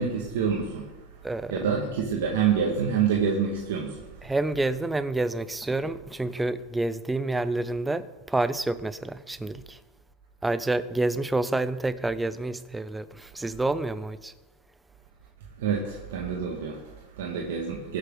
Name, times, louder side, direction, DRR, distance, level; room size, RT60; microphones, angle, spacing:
voice 1, 0.0-4.3 15.6-18.0, right 6 dB, 85° right, 1.8 m, -28 dB
voice 2, 1.2-1.8 4.2-9.8 10.4-14.3, right 2 dB, 5° right, 0.5 m, -28 dB
21.0 x 8.2 x 3.9 m
supercardioid pair, 145°, 0 cm